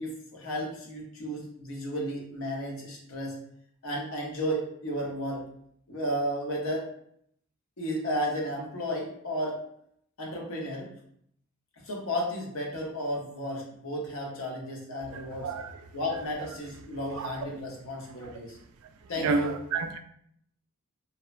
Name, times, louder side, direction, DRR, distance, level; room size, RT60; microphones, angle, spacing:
voice 1, 0.0-3.4 3.8-5.5 5.9-6.9 7.8-9.6 10.2-10.9 11.8-15.5 15.9-18.6 19.1-19.6, equal, 75° left, 0.7 m, -33 dB
voice 2, 15.1-15.7 17.1-17.4 18.2-18.3 19.2-20.0, right 4 dB, 80° right, 0.3 m, -30 dB
2.9 x 2.1 x 2.4 m
head